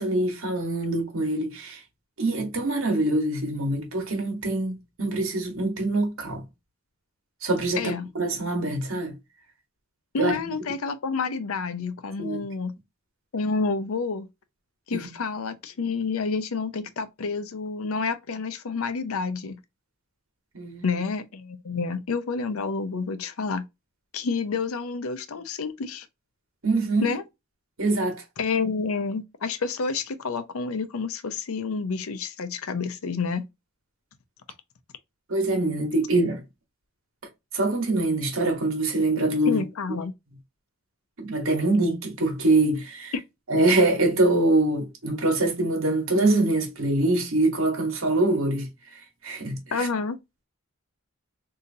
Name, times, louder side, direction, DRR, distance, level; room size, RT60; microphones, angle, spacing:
voice 1, 0.0-1.8 2.2-6.4 7.4-9.1 10.2-10.4 12.2-12.4 14.9-15.1 20.5-20.8 26.6-27.1 27.8-28.2 35.3-36.4 37.5-39.6 41.2-43.1 43.5-48.7 49.2-49.9, right 2 dB, 65° right, 1.3 m, -24 dB
voice 2, 7.7-8.1 10.1-12.8 13.3-14.3 14.9-19.6 20.8-23.7 24.1-26.1 27.0-27.2 28.4-33.4 39.5-40.1 49.7-50.2, left 4 dB, 75° left, 0.6 m, -29 dB
3.8 x 2.8 x 2.6 m
head